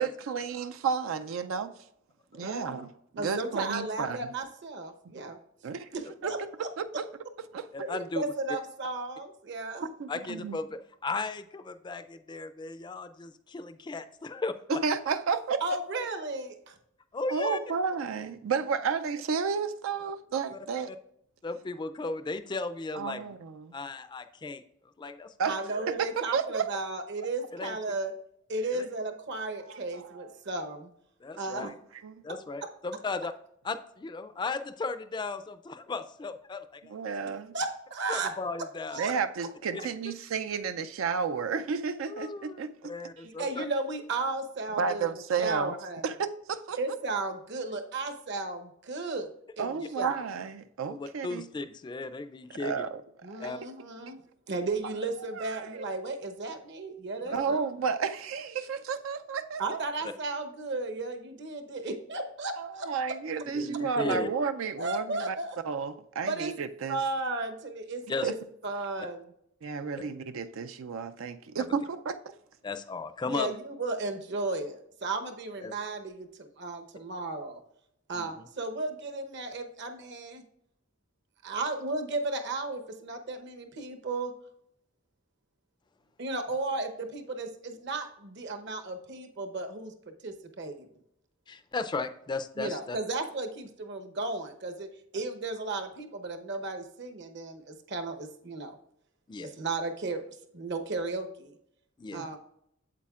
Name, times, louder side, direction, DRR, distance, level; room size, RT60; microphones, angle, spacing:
voice 1, 0.0-1.7 2.3-2.9 3.1-4.2 5.6-5.9 6.2-6.3 6.8-7.1 7.5-7.7 10.0-10.6 14.7-15.8 17.3-20.9 23.0-23.7 25.4-26.7 29.7-30.3 32.0-32.1 36.9-37.5 39.0-42.9 44.8-45.7 46.0-47.0 49.6-51.4 52.6-53.0 53.3-53.5 55.3-55.8 57.3-59.8 62.6-65.4 65.6-67.0 68.2-68.3 69.6-72.3 102.1-102.3, right 5 dB, 85° right, 0.4 m, -32 dB
voice 2, 2.4-2.9 3.2-5.4 5.9-6.4 7.8-9.9 15.6-16.7 25.4-28.1 28.5-30.9 31.4-31.7 37.5-38.3 38.9-39.1 43.2-45.1 45.4-46.0 46.8-49.3 49.6-50.2 53.2-54.2 54.5-57.7 59.6-62.9 64.8-65.6 66.2-66.5 66.9-68.3 68.6-69.2 73.3-77.6 78.1-80.4 81.4-84.3 86.2-89.9 90.2-90.9 92.6-94.9 95.1-98.8 99.4-100.2 100.5-101.6 102.1-102.4, right 3 dB, 60° right, 0.9 m, -34 dB
voice 3, 7.7-8.2 10.1-14.8 17.1-17.6 20.5-21.0 21.4-23.3 23.7-24.6 25.0-25.5 27.5-27.8 28.7-28.8 31.2-31.7 32.2-33.3 33.6-36.9 38.1-39.0 39.7-39.8 42.1-43.7 49.8-49.9 50.9-52.7 53.4-53.6 57.3-57.6 63.5-64.3 68.1-68.3 71.6-71.7 72.6-73.5 75.6-75.7 78.1-78.5 91.5-93.0 99.3-99.5 102.0-102.4, left 3 dB, 20° left, 0.3 m, -36 dB
8.4 x 7.5 x 2.4 m
head